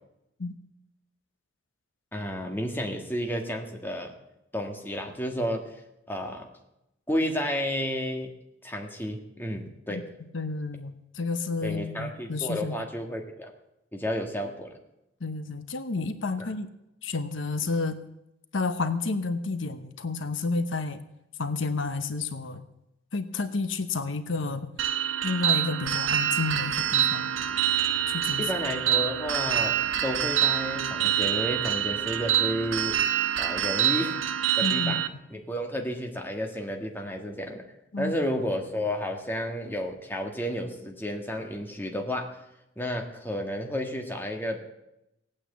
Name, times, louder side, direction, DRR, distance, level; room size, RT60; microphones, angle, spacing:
voice 1, 2.1-4.1 4.5-5.7 6.1-6.5 7.1-8.3 8.6-10.0 11.6-13.5 13.9-14.7 16.4-16.5 28.4-29.7 30.0-33.0 33.4-34.2 34.6-35.0 35.3-37.6 38.0-42.3 42.7-44.6, equal, 10° left, 2 dB, 1.8 m, -31 dB
voice 2, 10.3-12.8 15.2-16.7 17.0-18.0 18.5-21.0 21.4-22.6 23.1-24.7 25.2-27.3 28.1-28.4 34.6-35.0 37.9-38.1, left 3 dB, 75° left, 10 dB, 1.0 m, -30 dB
sound 1, 24.8-35.1, right 11 dB, 85° right, 0.8 m, -26 dB
sound 2, 26.8-33.0, right 1 dB, 45° right, 2.2 m, -49 dB
17.5 x 8.9 x 8.1 m, 0.88 s
head